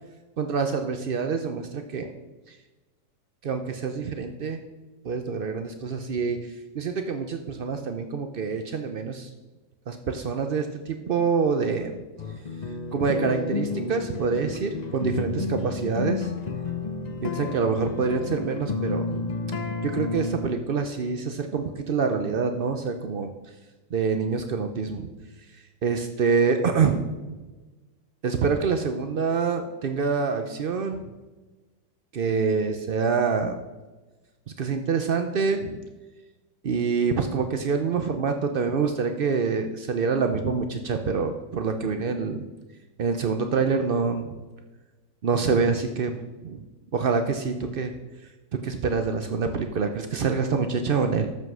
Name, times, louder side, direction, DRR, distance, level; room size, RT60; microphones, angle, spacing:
voice 1, 0.4-2.1 2.5-2.6 3.4-4.6 5.0-9.3 9.9-12.0 12.9-16.3 17.2-19.3 19.8-23.3 23.9-25.1 25.8-27.1 27.3-27.5 28.2-31.0 32.1-33.6 34.6-35.8 36.6-42.5 43.0-44.3 45.2-46.1 46.4-46.6 46.9-47.9 48.6-51.3, right 5 dB, 75° right, 6 dB, 0.5 m, -26 dB
sound 1, 12.2-20.5, left 3 dB, 85° left, 0.3 m, -31 dB
13.0 x 5.6 x 6.2 m, 1.2 s
omnidirectional pair, 1.9 m